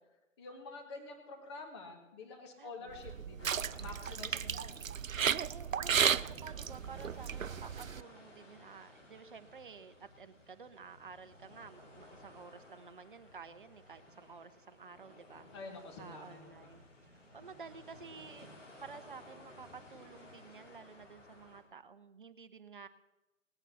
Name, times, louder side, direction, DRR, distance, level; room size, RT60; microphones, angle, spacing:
voice 1, 0.4-4.8 15.5-16.8, left 3 dB, 20° left, 3 dB, 1.7 m, -48 dB
voice 2, 2.6-3.1 5.5-15.5 16.0-18.5 18.8-22.9, right 5 dB, 40° right, 11 dB, 0.8 m, -52 dB
sound 1, 2.9-8.0, right 7 dB, 85° right, 0.6 m, -34 dB
sound 2, 3.4-21.6, left 1 dB, 65° left, 4.6 m, -57 dB
18.5 x 9.1 x 7.2 m, 1.1 s
figure-of-eight pair, 150°, 39 cm